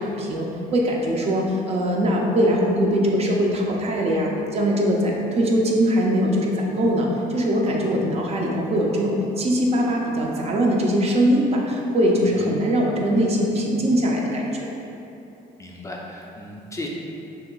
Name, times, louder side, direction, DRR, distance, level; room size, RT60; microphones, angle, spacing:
voice 1, 0.0-14.7, equal, 40° right, -1 dB, 0.6 m, -21 dB
voice 2, 15.6-16.9, left 2 dB, 15° left, -2 dB, 0.4 m, -36 dB
5.7 x 2.9 x 2.3 m, 3.0 s
cardioid pair, 110°, 17 cm